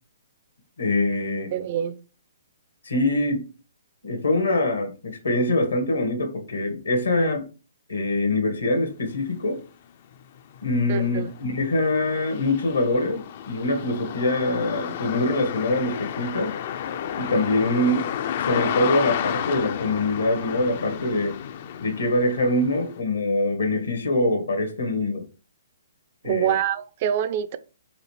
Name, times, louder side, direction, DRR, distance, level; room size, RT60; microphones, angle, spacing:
voice 1, 0.8-1.5 2.8-3.5 4.0-7.4 7.9-9.6 10.6-16.5 17.2-18.1 18.4-21.4 21.8-25.2 26.2-26.5, left 2 dB, 85° left, 1.4 m, -24 dB
voice 2, 1.5-2.0 10.9-11.3 26.2-27.6, right 10 dB, 45° right, 0.3 m, -25 dB
sound 1, 9.6-9.7 10.1-23.0, left 9 dB, 50° left, 0.4 m, -32 dB
4.9 x 2.8 x 3.2 m
hypercardioid pair, 130°, 0 cm